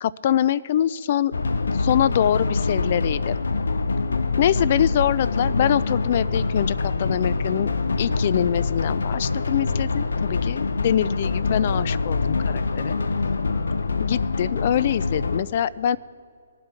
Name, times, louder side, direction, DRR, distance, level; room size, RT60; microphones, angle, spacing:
voice 1, 0.0-1.3 1.8-3.3 4.4-7.7 8.0-13.0 14.0-16.0, left 10 dB, 45° left, 19 dB, 0.3 m, -24 dB
sound 1, 1.3-15.4, left 3 dB, 85° left, 0.7 m, -25 dB
21.5 x 7.6 x 4.5 m, 2.2 s
hypercardioid pair, 150°, 0 cm